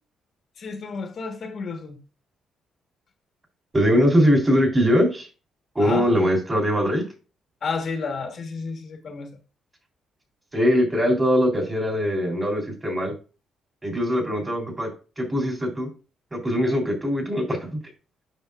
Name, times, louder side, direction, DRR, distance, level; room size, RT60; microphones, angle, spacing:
voice 1, 0.6-2.0 5.8-6.1 7.6-9.4, left 4 dB, 55° left, 1.4 m, -31 dB
voice 2, 3.7-5.3 5.7-7.0 10.5-13.1 13.8-14.9 15.2-15.9 16.3-17.7, equal, 20° right, 3.4 m, -21 dB
9.1 x 5.8 x 2.5 m
cardioid pair, 90°, 0 cm